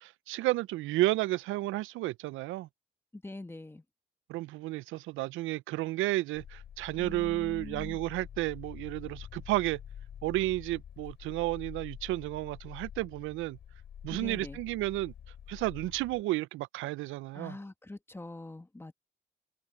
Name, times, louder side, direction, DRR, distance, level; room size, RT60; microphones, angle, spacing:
voice 1, 0.0-2.7 4.3-9.8 10.2-13.6 14.0-15.1 15.5-17.6, right 17 dB, 85° right, 0.4 m, -32 dB
voice 2, 3.1-3.8 7.0-8.0 14.1-14.6 17.3-18.9, left 2 dB, 10° left, 1.6 m, -44 dB
sound 1, 6.3-16.2, left 9 dB, 60° left, 4.0 m, -47 dB
open air
cardioid pair, 90°, 20 cm